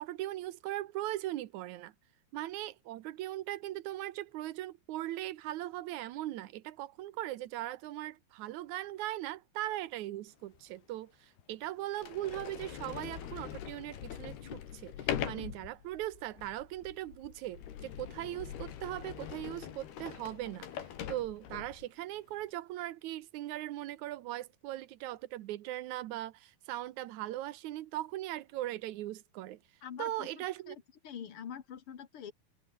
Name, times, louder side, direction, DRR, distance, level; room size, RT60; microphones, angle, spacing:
voice 1, 0.0-1.9 2.3-29.6 30.0-30.8, right 15 dB, 75° right, 1.8 m, -39 dB
Sliding door, 10.6-10.7 11.4-11.5 11.9-21.9, left 9 dB, 80° left, 4.4 m, -42 dB
voice 2, 29.8-30.8 31.0-32.3, left 8 dB, 45° left, 1.9 m, -45 dB
omnidirectional pair, 4.5 m